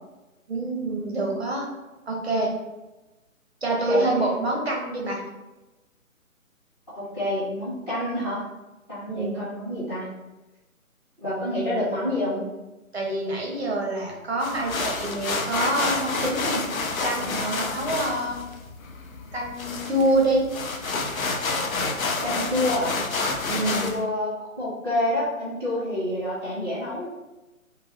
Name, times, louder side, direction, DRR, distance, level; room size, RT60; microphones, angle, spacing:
voice 1, 0.5-1.6 2.1-2.5 3.6-5.2 9.1-9.4 12.9-16.7 17.0-18.4 19.3-20.4 23.5-23.9, right 1 dB, 50° right, -1 dB, 0.6 m, -26 dB
voice 2, 3.7-4.1 6.9-8.5 8.9-10.1 11.2-12.4 22.2-22.9 23.5-24.3 24.6-27.1, left 1 dB, 20° left, -10 dB, 1.3 m, -28 dB
sound 1, 14.4-24.0, left 3 dB, 70° left, 0.6 m, -29 dB
2.8 x 2.5 x 3.0 m, 1.1 s
figure-of-eight pair, 150°, 43 cm